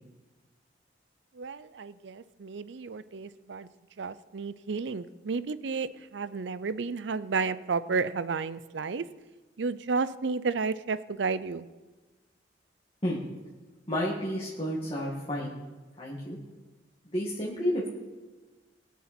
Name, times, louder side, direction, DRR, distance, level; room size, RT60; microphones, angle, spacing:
voice 1, 1.4-3.7 4.0-9.0 9.6-11.7, right 4 dB, 75° right, 15 dB, 0.5 m, -32 dB
voice 2, 13.9-15.5 16.0-16.4 17.1-17.9, equal, 30° left, -5 dB, 2.1 m, -31 dB
22.0 x 7.3 x 4.4 m, 1.3 s
head